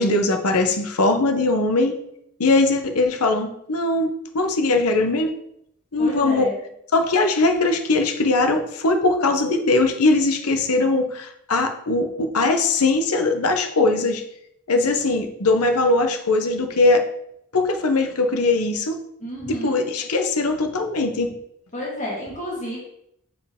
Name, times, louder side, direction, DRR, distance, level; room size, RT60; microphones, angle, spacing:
voice 1, 0.0-2.0 2.4-5.3 5.9-6.5 6.9-14.2 14.7-17.0 17.5-19.0 19.5-21.3, left 2 dB, 85° left, 5 dB, 0.9 m, -20 dB
voice 2, 6.0-6.6 19.2-19.8 21.7-22.8, equal, 35° left, -5 dB, 1.9 m, -31 dB
7.6 x 4.6 x 3.6 m, 0.76 s
head